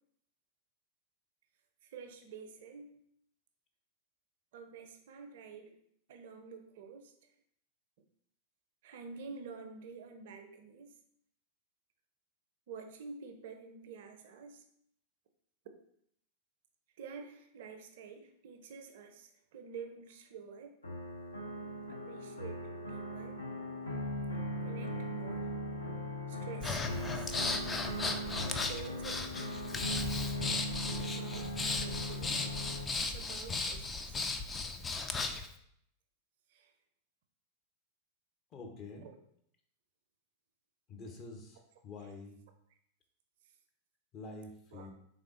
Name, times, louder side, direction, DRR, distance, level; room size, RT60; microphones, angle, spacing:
voice 1, 1.8-3.0 4.5-5.7 6.1-7.1 8.8-11.0 12.7-14.6 17.0-20.8 21.9-23.4 24.6-25.5 26.3-27.4 28.4-29.6 30.5-31.5 31.8-32.5 33.0-34.2 36.5-36.7 39.0-39.2 42.0-42.1 44.7-44.9, right 5 dB, 55° right, 6 dB, 0.5 m, -49 dB
sound 1, 20.8-32.8, equal, 75° left, 0.6 m, -39 dB
Breathing, 26.6-35.5, left 3 dB, 15° left, 0.3 m, -36 dB
voice 2, 38.5-39.1 40.9-41.6 41.8-42.4 44.1-44.9, left 3 dB, 30° left, 2 dB, 0.7 m, -47 dB
3.5 x 3.3 x 2.5 m, 0.69 s
figure-of-eight pair, 90°, 0 cm